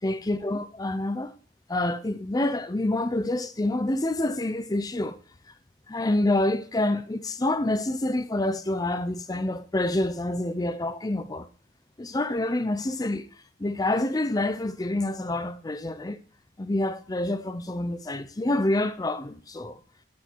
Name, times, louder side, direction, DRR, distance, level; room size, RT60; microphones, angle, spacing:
voice 1, 0.0-1.3 1.7-5.2 5.9-11.5 12.0-13.3 13.6-16.2 16.6-19.8, left 1 dB, 20° left, 0.5 m, -27 dB
8.0 x 7.2 x 4.5 m
head